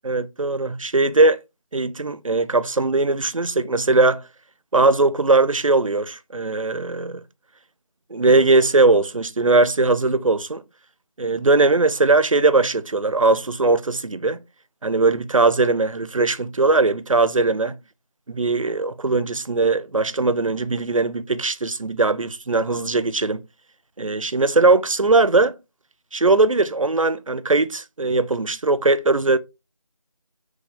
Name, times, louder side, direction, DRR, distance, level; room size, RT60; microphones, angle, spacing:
voice 1, 0.0-1.4 1.7-4.2 4.7-7.2 8.1-10.6 11.2-14.4 14.8-17.8 18.3-23.4 24.0-25.6 26.1-29.4, right 3 dB, 75° right, 0.6 m, -19 dB
6.2 x 2.3 x 3.6 m
figure-of-eight pair, 180°, 17 cm